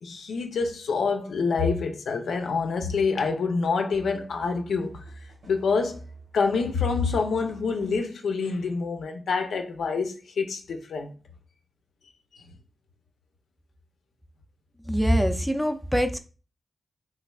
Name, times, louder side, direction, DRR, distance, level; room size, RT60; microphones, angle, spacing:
voice 1, 0.0-5.0 5.5-6.0 6.3-11.1, left 4 dB, 85° left, 0.4 m, -26 dB
sound 1, 3.9-8.1, right 2 dB, 75° right, 1.1 m, -47 dB
voice 2, 14.9-16.2, equal, ahead, 0.4 m, -23 dB
3.3 x 3.1 x 2.2 m
cardioid pair, 70°, 0 cm